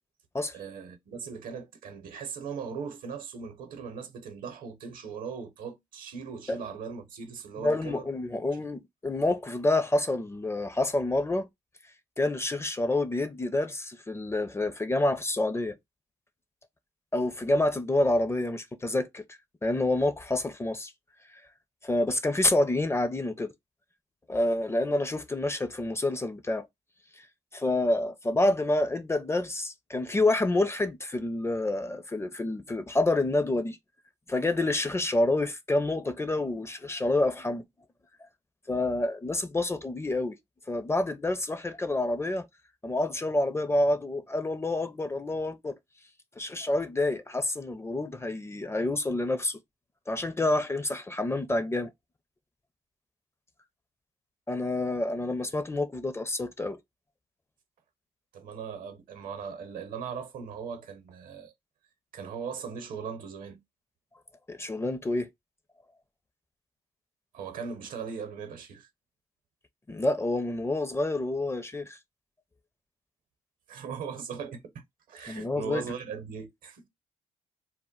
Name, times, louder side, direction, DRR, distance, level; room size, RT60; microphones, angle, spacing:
voice 1, 0.5-8.1 8.5-8.7 58.3-61.5 62.1-63.6 67.3-68.9 73.7-76.9, right 6 dB, 70° right, 0.7 m, -39 dB
voice 2, 7.6-11.5 12.2-15.8 17.1-19.2 19.6-20.9 21.8-23.5 24.3-26.7 27.5-33.8 34.3-37.6 38.7-40.4 40.7-42.5 42.8-45.8 46.4-49.6 50.1-51.9 54.5-56.8 64.5-65.3 69.9-72.0 75.3-75.8, left 2 dB, 15° left, 0.5 m, -28 dB
2.1 x 2.1 x 3.7 m
supercardioid pair, 55°, 15 cm